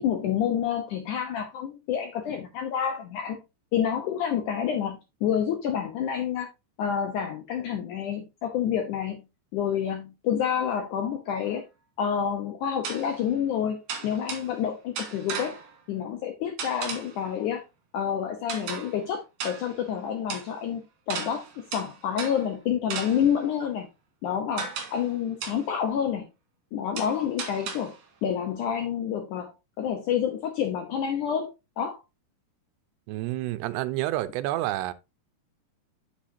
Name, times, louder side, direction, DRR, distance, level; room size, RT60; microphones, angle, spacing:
voice 1, 0.0-3.4 3.7-6.5 6.8-9.2 9.5-11.6 12.0-15.5 15.9-17.6 17.9-23.9 24.2-26.3 26.7-29.5 29.8-31.5 31.8-32.0, left 8 dB, 80° left, 1.8 m, -28 dB
sound 1, 11.4-11.5 12.8-13.3 13.9-14.6 15.0-15.8 16.6-17.2 18.5-19.0 19.4-19.9 20.3-20.5 21.1-22.6 22.9-23.4 24.6-25.1 25.4-25.7 27.0-28.0, right 5 dB, 60° right, 3.6 m, -36 dB
voice 2, 33.1-34.9, right 15 dB, 90° right, 2.8 m, -29 dB
8.4 x 8.0 x 2.7 m
omnidirectional pair, 4.7 m